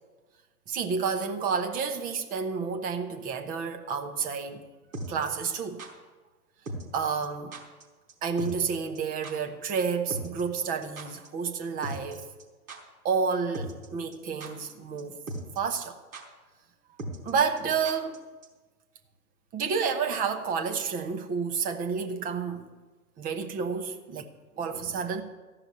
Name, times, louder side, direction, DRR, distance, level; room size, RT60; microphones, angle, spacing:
voice 1, 0.7-4.6 5.1-5.8 6.9-7.5 8.2-12.2 13.0-15.2 15.6-16.0 17.2-18.2 19.5-22.7 23.2-25.2, right 5 dB, 20° right, 7 dB, 0.9 m, -30 dB
sound 1, 4.9-5.9 6.7-7.0 7.2-7.3 7.5-7.8 8.1-8.2 8.4-8.7 8.9-9.0 9.2-9.3 10.1-11.3 11.5-11.6 11.8-12.4 12.7-12.8 13.5-13.9 14.1-14.7 15.0-15.1 15.3-15.6 15.8-15.9 16.1-16.2 17.0-18.2 18.4-18.5, right 1 dB, 65° right, 4.2 m, -38 dB
15.0 x 5.9 x 9.4 m, 1.3 s
hypercardioid pair, 120°, 45 cm